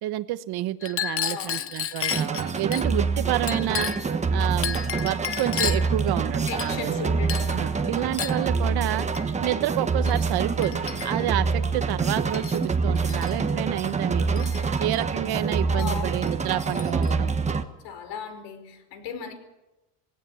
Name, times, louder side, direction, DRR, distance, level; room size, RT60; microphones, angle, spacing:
voice 1, 0.0-3.9 4.3-7.1 7.5-14.5 14.8-17.3, right 15 dB, 60° right, 13 dB, 1.3 m, -29 dB
Chink clink, 0.8-2.9 3.5-4.1 4.6-6.0 6.5-7.0 7.3-7.6 8.2-8.5 9.1-9.3 10.1-10.2 10.6-11.3 12.0-12.7 13.0-13.3 14.4-15.0 15.8-15.9 16.2-17.1, left 9 dB, 30° left, 1.1 m, -32 dB
voice 2, 1.2-1.7 6.5-8.1 15.7-16.2 16.5-17.0 17.8-19.3, left 7 dB, 65° left, 8 dB, 5.0 m, -37 dB
sound 1, 2.1-17.6, right 4 dB, 15° right, 1.3 m, -26 dB
Explosion, 10.8-13.8, left 6 dB, 85° left, 4.4 m, -48 dB
19.0 x 18.0 x 9.2 m, 0.98 s
cardioid pair, 145°, 44 cm